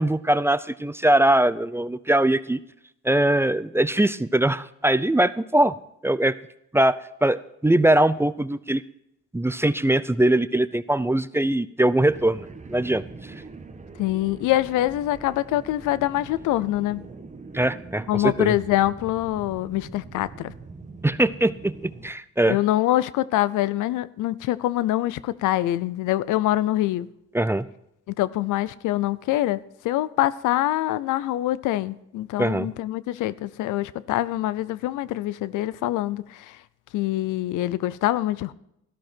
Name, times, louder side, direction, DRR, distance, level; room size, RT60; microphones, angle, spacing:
voice 1, 0.0-2.6 3.0-5.7 6.0-6.4 6.7-8.8 9.3-13.0 17.5-18.6 21.0-22.6 27.3-27.7 32.4-32.7, right 1 dB, 10° right, 0.5 m, -21 dB
sound 1, 12.0-22.1, right 3 dB, 25° right, 1.4 m, -43 dB
voice 2, 14.0-17.0 18.1-20.5 22.5-27.1 28.1-36.5 36.9-38.5, left 15 dB, 90° left, 0.6 m, -25 dB
13.5 x 12.5 x 4.4 m
cardioid pair, 90°, 30 cm